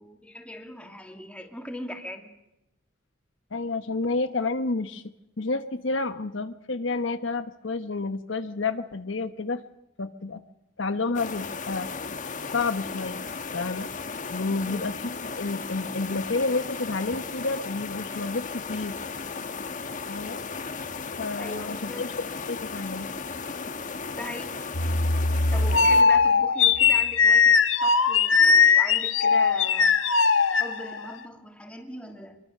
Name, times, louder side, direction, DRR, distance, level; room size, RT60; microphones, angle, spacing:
voice 1, 0.0-2.3 14.6-14.9 21.4-22.1 24.1-24.5 25.5-29.9 30.6-32.4, left 1 dB, 5° left, 3 dB, 2.8 m, -40 dB
voice 2, 3.5-5.0 5.4-9.6 10.0-10.4 10.8-11.9 12.5-13.3 13.5-13.9 14.3-15.0 15.3-18.9 20.1-20.4 21.2-22.1 22.5-23.1, left 3 dB, 75° left, 10 dB, 1.1 m, -30 dB
sound 1, 11.1-26.0, left 5 dB, 40° left, 1.3 m, -35 dB
sound 2, 24.7-31.1, left 5 dB, 90° left, 1.4 m, -20 dB
25.0 x 23.0 x 6.7 m, 0.88 s
head